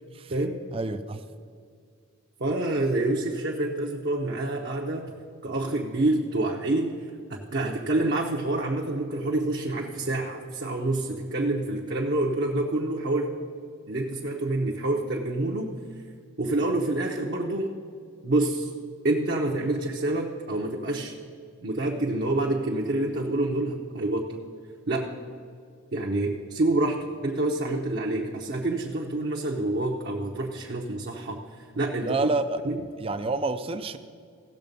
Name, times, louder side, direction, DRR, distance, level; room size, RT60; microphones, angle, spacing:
voice 1, 0.7-1.2 32.0-32.6 33.0-34.0, right 3 dB, 25° right, 9 dB, 0.4 m, -28 dB
voice 2, 2.4-5.1 5.4-7.0 7.3-13.4 13.9-15.7 16.4-17.7 18.2-18.7 19.0-21.1 21.6-24.4 24.9-25.1 25.9-31.4 31.8-32.3 32.6-32.8, right 2 dB, 50° right, -1 dB, 0.8 m, -27 dB
16.0 x 6.7 x 5.3 m, 2.2 s
head